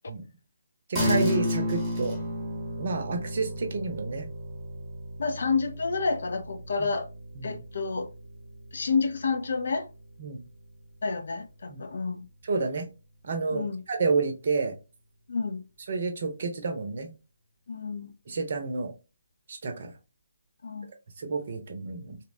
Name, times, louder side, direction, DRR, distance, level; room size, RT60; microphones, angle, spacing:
sound 1, 0.9-10.7, left 1 dB, 5° right, 0.8 m, -33 dB
voice 1, 0.9-2.2 2.8-4.3 6.8-6.9 7.3-7.6 10.2-10.4 11.7-11.8 12.4-12.9 13.2-14.7 15.9-17.1 18.3-18.9 19.5-19.9 21.2-22.2, right 4 dB, 45° right, 0.7 m, -30 dB
voice 2, 5.2-7.1 7.4-8.1 8.7-9.9 11.0-12.2 13.5-13.8 15.3-15.6 17.7-18.1 20.6-20.9, left 4 dB, 55° left, 0.4 m, -29 dB
2.9 x 2.1 x 2.5 m
figure-of-eight pair, 145°, 0 cm